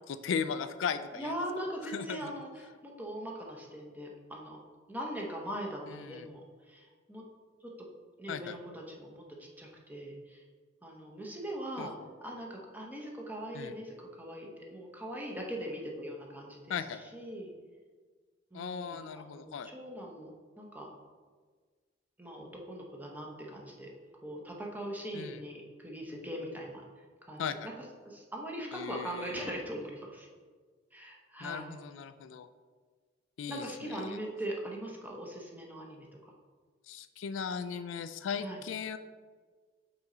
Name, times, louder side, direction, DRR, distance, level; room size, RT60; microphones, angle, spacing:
voice 1, 0.2-1.3 1.9-2.3 5.9-6.3 8.3-8.6 11.8-11.9 13.5-13.7 16.7-17.0 18.5-19.7 25.1-25.4 27.4-27.7 28.7-29.5 31.4-32.5 33.4-34.2 36.9-39.0, left 6 dB, 85° left, 11 dB, 0.3 m, -37 dB
voice 2, 1.2-4.6 4.9-7.2 7.6-7.7 8.2-10.4 10.8-11.9 12.2-17.5 18.5-20.3 20.6-20.9 22.2-23.9 24.2-27.7 28.0-30.3 30.9-31.8 33.5-36.3 38.4-38.6, right 1 dB, 10° right, -1 dB, 0.9 m, -41 dB
5.9 x 4.2 x 3.9 m, 1.5 s
head